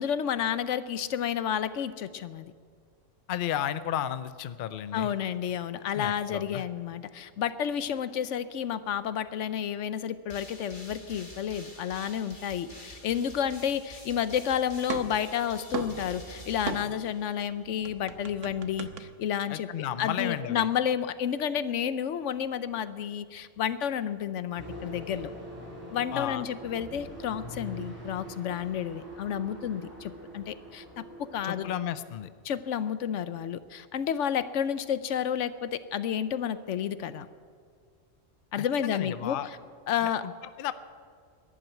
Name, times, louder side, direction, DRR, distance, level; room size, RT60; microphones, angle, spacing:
voice 1, 0.0-2.5 4.9-25.3 25.9-31.0 31.3-31.7 32.4-37.3 38.5-39.6 39.9-40.2, left 9 dB, 75° left, 14 dB, 1.0 m, -31 dB
voice 2, 3.3-5.1 6.0-6.6 19.5-20.7 26.1-26.4 31.4-32.3 38.6-39.5 40.0-40.3 40.6-40.7, left 10 dB, 55° left, 14 dB, 0.6 m, -33 dB
sound 1, 10.3-17.6, equal, 40° left, 2.7 m, -48 dB
sound 2, 13.5-14.4 14.7-17.2 17.5-19.0, right 6 dB, 80° right, 1.2 m, -38 dB
sound 3, 24.6-31.8, equal, 15° left, 4.1 m, -43 dB
11.5 x 11.0 x 9.2 m, 2.1 s
omnidirectional pair, 1.3 m